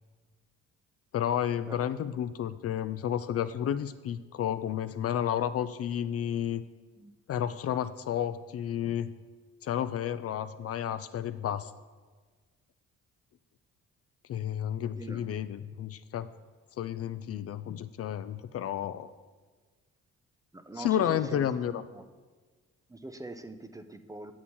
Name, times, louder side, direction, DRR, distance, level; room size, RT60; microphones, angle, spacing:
voice 1, 1.1-6.6 7.3-9.1 9.6-11.7 14.3-16.3 16.8-19.1 20.8-21.8, left 10 dB, 50° left, 13 dB, 0.4 m, -31 dB
voice 2, 20.5-22.0 22.9-24.3, right 1 dB, 10° right, 9 dB, 0.5 m, -43 dB
8.5 x 7.1 x 4.3 m, 1.4 s
cardioid pair, 90°, 30 cm